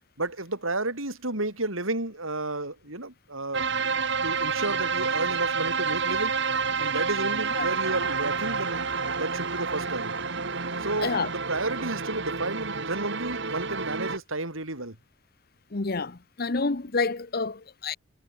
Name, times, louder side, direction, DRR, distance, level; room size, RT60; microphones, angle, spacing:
voice 1, 0.2-3.7 4.2-6.3 6.8-10.1 10.8-15.0, right 2 dB, 80° right, 7.8 m, -32 dB
sound 1, 3.5-14.2, right 5 dB, 60° right, 2.1 m, -29 dB
voice 2, 15.7-18.0, left 4 dB, 50° left, 0.9 m, -28 dB
head